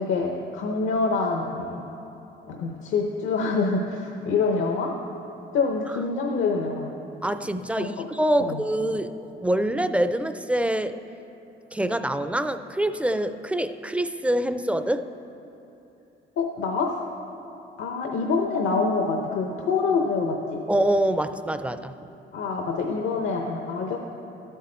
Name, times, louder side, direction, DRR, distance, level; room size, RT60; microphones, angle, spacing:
voice 1, 0.0-1.8 2.5-4.9 5.5-6.9 7.8-7.9 8.4-8.6 16.4-16.9 17.8-20.6 22.3-24.0, left 4 dB, 80° left, 2 dB, 0.8 m, -26 dB
voice 2, 7.2-11.0 11.7-15.1 20.7-22.0, right 1 dB, 5° right, 11 dB, 0.4 m, -25 dB
13.0 x 8.1 x 4.3 m, 3.0 s
cardioid pair, 90°, 20 cm